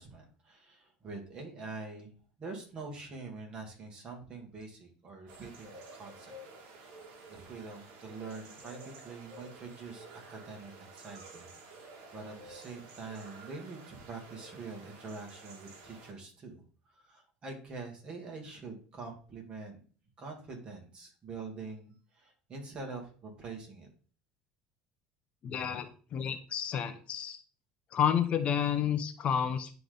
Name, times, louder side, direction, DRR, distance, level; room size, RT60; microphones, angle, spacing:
voice 1, 0.0-2.1 2.4-6.3 6.8-7.0 7.3-11.8 12.1-19.8 20.2-23.9, right 3 dB, 35° right, 2 dB, 2.4 m, -45 dB
sound 1, 5.3-16.1, right 3 dB, 60° right, 1.8 m, -51 dB
voice 2, 25.4-27.4 27.9-29.8, left 8 dB, 45° left, 9 dB, 0.8 m, -30 dB
10.5 x 3.5 x 4.0 m, 0.41 s
supercardioid pair, 110°, 3 cm